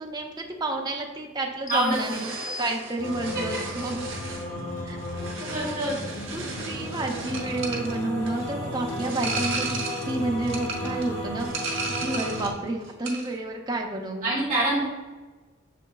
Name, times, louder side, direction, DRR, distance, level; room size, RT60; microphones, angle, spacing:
voice 1, 0.0-2.3 2.6-4.0 4.3-4.4 4.8-5.0 5.4-5.8 6.3-9.8 10.0-11.5 12.0-14.4, right 2 dB, 20° right, 2 dB, 0.5 m, -30 dB
sound 1, 1.7-3.4, left 2 dB, 40° left, 0.5 m, -40 dB
voice 2, 1.7-2.2 3.3-3.4 5.5-6.2 14.2-14.8, right 1 dB, 45° right, -7 dB, 1.2 m, -26 dB
sound 2, 1.9-12.6 12.9-13.4, right 3 dB, 75° right, 0.9 m, -35 dB
sound 3, 3.0-12.5, left 1 dB, 60° left, 1.1 m, -34 dB
6.6 x 3.0 x 2.2 m, 1.3 s
head